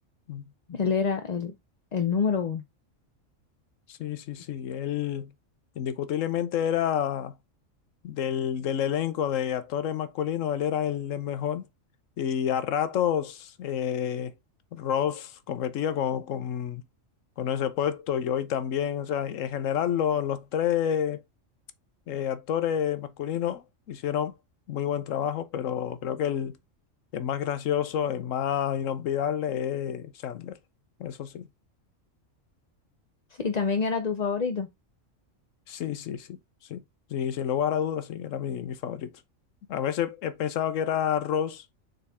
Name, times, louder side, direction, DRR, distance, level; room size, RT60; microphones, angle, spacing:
voice 1, 0.7-1.5 1.9-2.6 33.4-34.7, left 5 dB, 40° left, 0.6 m, -26 dB
voice 2, 3.9-5.3 5.8-7.4 8.0-11.7 12.2-14.3 14.7-16.8 17.4-21.2 22.1-24.4 24.7-26.6 27.1-30.6 31.0-31.5 35.7-36.4 36.7-36.8 37.1-39.1 39.7-41.6, left 9 dB, 80° left, 1.1 m, -29 dB
6.9 x 4.0 x 3.5 m
omnidirectional pair, 1.4 m